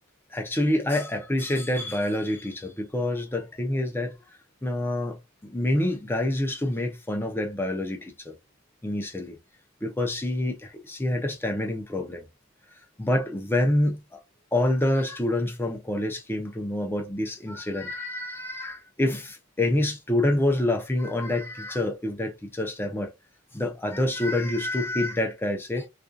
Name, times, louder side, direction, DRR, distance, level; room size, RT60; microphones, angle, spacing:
voice 1, 0.3-4.1 4.6-5.2 5.4-8.1 8.8-9.4 9.8-10.6 10.9-12.2 13.0-14.0 14.5-23.1 23.5-25.9, left 1 dB, 10° left, 0.6 m, -27 dB
2.5 x 2.3 x 2.5 m
head